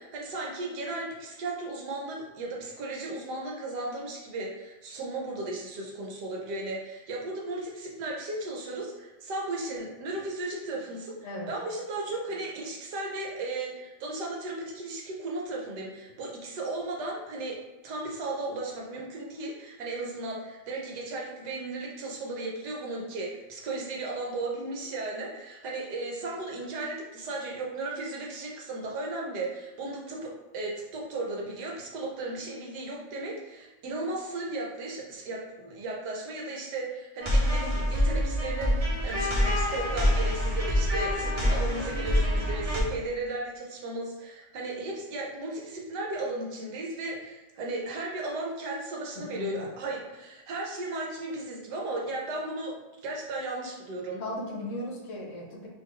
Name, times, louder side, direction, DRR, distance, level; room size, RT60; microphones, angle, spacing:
voice 1, 0.0-11.2 11.5-52.7 53.0-54.2, right 2 dB, 70° right, -2 dB, 1.4 m, -35 dB
sound 1, 37.2-42.8, equal, 50° right, 0.4 m, -26 dB
voice 2, 49.2-49.7 54.2-55.7, left 1 dB, 55° left, -2 dB, 1.0 m, -37 dB
3.9 x 3.0 x 3.1 m, 1.1 s
omnidirectional pair, 1.9 m